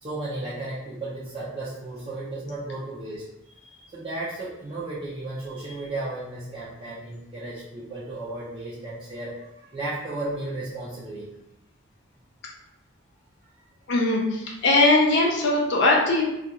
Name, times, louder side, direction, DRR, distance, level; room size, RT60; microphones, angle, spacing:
voice 1, 0.0-11.3 13.6-13.7, right 2 dB, 25° right, -9 dB, 0.4 m, -34 dB
voice 2, 13.9-16.2, left 2 dB, 55° left, -2 dB, 0.5 m, -20 dB
2.4 x 2.2 x 2.8 m, 0.84 s
head